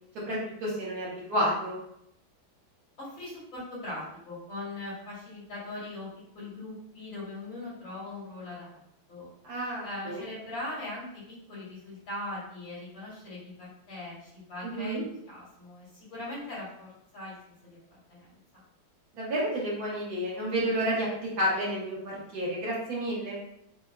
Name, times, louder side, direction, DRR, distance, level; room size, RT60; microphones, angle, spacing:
voice 1, 0.3-1.8 9.4-10.2 14.6-15.0 19.1-23.3, equal, 60° right, -5 dB, 1.3 m, -30 dB
voice 2, 3.0-6.1 6.3-8.8 9.1-9.3 9.8-17.4 17.6-18.3 18.5-18.6, left 2 dB, 85° left, -8 dB, 2.4 m, -40 dB
4.6 x 2.0 x 2.2 m, 0.76 s
omnidirectional pair, 2.0 m